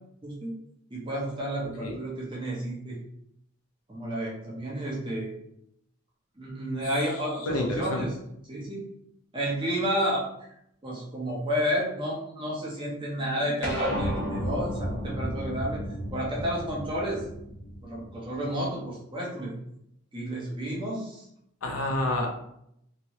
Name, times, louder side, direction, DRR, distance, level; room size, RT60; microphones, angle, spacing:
voice 1, 0.9-3.0 3.9-5.3 6.4-8.2 8.5-8.8 9.3-10.3 10.8-15.8 16.1-17.2 17.8-19.5 20.1-21.3, equal, 25° right, -4 dB, 0.7 m, -31 dB
voice 2, 7.4-8.1 21.6-22.3, left 1 dB, 90° left, 1 dB, 0.7 m, -28 dB
sound 1, 13.6-18.4, equal, 10° left, 0.9 m, -33 dB
2.9 x 2.6 x 3.0 m, 0.76 s
head